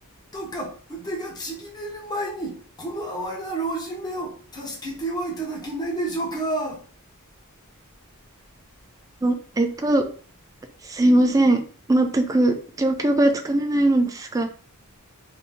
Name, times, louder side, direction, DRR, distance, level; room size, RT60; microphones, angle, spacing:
voice 1, 0.3-6.8, right 1 dB, 20° left, 0.9 m, -30 dB
voice 2, 9.2-10.1 10.8-11.6 11.9-14.5, right 1 dB, 15° right, 0.3 m, -20 dB
2.8 x 2.7 x 3.4 m
head